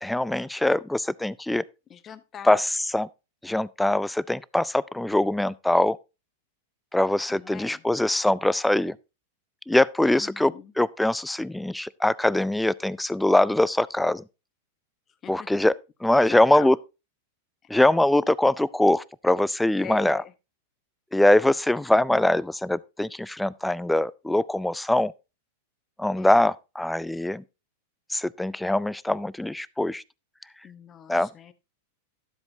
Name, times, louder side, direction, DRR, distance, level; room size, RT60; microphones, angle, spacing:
voice 1, 0.0-1.6 2.4-2.7 2.9-3.1 3.4-6.0 6.9-9.0 9.7-14.2 15.3-15.7 16.0-16.8 17.7-20.2 21.1-25.1 26.0-27.4 28.1-30.0 31.1-31.3, left 1 dB, 5° left, 0.4 m, -22 dB
voice 2, 1.9-2.6 7.3-7.8 10.1-10.7 15.2-15.5 16.2-16.8 17.6-17.7 19.8-20.3 26.1-26.5 30.6-31.5, left 8 dB, 30° left, 1.1 m, -42 dB
12.5 x 7.9 x 2.7 m
hypercardioid pair, 100°, 0 cm